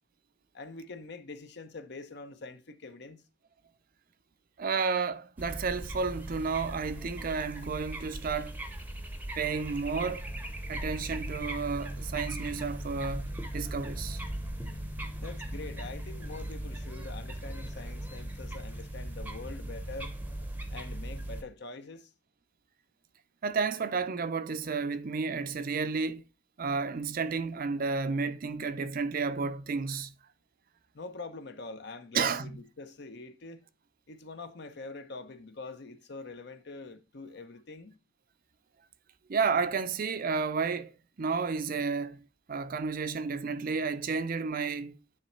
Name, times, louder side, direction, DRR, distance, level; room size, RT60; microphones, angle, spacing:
voice 1, 0.5-3.2 15.2-20.1 20.7-22.1 30.9-33.6 34.1-38.0, left 3 dB, 60° left, 0.8 m, -44 dB
voice 2, 4.6-8.6 9.4-10.3 10.7-14.2 23.4-26.2 26.6-30.1 32.1-32.5 39.3-45.0, right 5 dB, 45° right, 0.5 m, -31 dB
sound 1, 5.4-21.4, right 1 dB, 10° right, 0.7 m, -38 dB
9.7 x 3.3 x 4.4 m
head